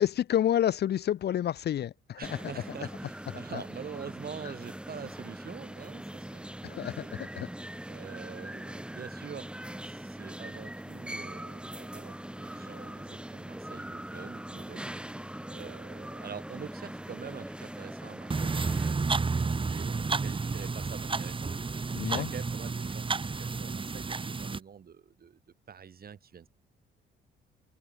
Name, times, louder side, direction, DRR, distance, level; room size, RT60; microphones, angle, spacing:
voice 1, 0.0-2.4 3.5-3.6 6.6-7.5 21.9-22.3, left 11 dB, 55° left, 0.6 m, -29 dB
sound 1, 2.2-18.9, right 1 dB, 5° right, 2.0 m, -41 dB
voice 2, 2.2-7.2 7.4-9.5 9.8-25.4 25.7-26.5, right 7 dB, 50° right, 4.7 m, -46 dB
sound 2, 18.3-24.6, right 4 dB, 25° right, 1.8 m, -31 dB
cardioid pair, 90°, 20 cm